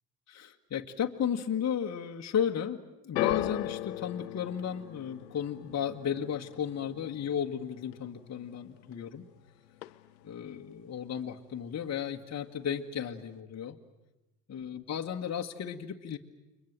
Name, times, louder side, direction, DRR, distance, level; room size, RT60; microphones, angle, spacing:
voice 1, 0.3-9.2 10.2-13.8 14.5-16.2, left 8 dB, 30° left, 3 dB, 1.7 m, -34 dB
sound 1, 3.2-9.4 9.7-10.4 11.1-11.2, left 17 dB, 80° left, 0.9 m, -38 dB
30.0 x 24.0 x 7.5 m, 0.99 s
hypercardioid pair, 70°, 50 cm